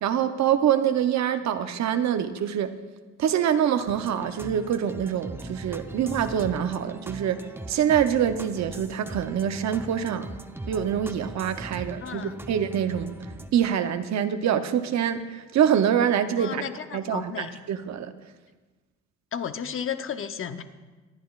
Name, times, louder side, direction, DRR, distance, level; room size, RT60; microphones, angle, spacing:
voice 1, 0.0-2.7 3.2-10.3 10.7-13.2 13.5-16.6 16.9-18.1, right 9 dB, 65° right, 9 dB, 0.8 m, -25 dB
sound 1, 3.9-13.5, right 1 dB, 10° right, 0.7 m, -40 dB
voice 2, 12.0-12.4 16.4-17.5 19.3-20.6, left 8 dB, 45° left, 9 dB, 0.8 m, -33 dB
25.0 x 9.3 x 2.4 m, 1.3 s
cardioid pair, 90°, 30 cm